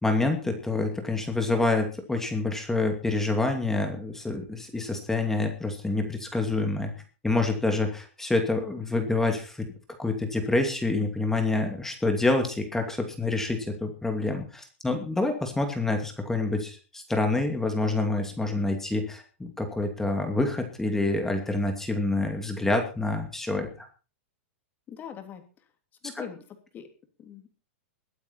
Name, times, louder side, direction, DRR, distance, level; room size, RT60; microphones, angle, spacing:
voice 1, 0.0-6.9 7.2-9.7 10.0-23.7, left 2 dB, 5° left, 5 dB, 2.5 m, -27 dB
voice 2, 24.9-25.4 26.0-26.9 27.2-27.6, left 8 dB, 25° left, 6 dB, 3.0 m, -42 dB
22.0 x 8.9 x 4.4 m, 0.35 s
hypercardioid pair, 140°, 7 cm